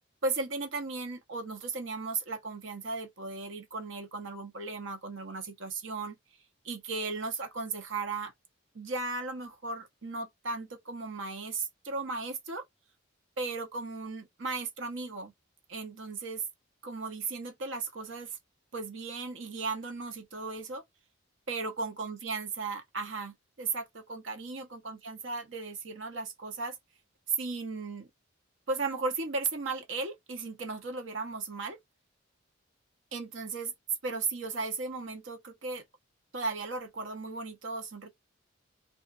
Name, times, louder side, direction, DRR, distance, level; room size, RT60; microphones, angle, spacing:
voice 1, 0.2-6.2 6.6-8.3 8.7-12.6 13.4-15.3 15.7-16.4 16.8-18.4 18.7-20.8 21.5-26.8 27.4-28.1 28.7-31.8 33.1-33.7 34.0-35.8 36.3-38.1, right 3 dB, 65° right, 0.8 m, -36 dB
3.4 x 2.4 x 2.4 m
head